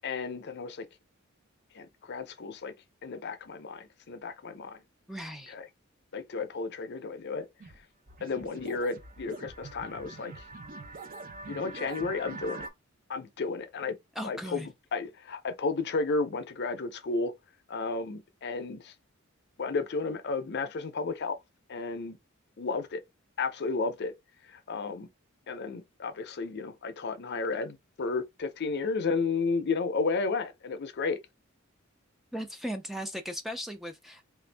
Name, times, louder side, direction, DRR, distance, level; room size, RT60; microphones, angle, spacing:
voice 1, 0.0-0.9 1.7-2.7 3.0-4.8 5.5-5.7 6.1-7.5 8.2-10.4 11.5-12.7 13.1-14.0 14.2-17.3 17.7-18.9 19.6-21.4 21.7-22.2 22.6-23.0 23.4-24.1 24.4-25.1 25.5-31.2, left 4 dB, 50° left, 0.6 m, -33 dB
voice 2, 5.1-5.5 14.2-14.7 32.3-34.2, equal, ahead, 0.4 m, -37 dB
sound 1, 7.6-7.8 8.1-12.7, right 3 dB, 45° right, 0.6 m, -43 dB
3.3 x 2.6 x 3.3 m
head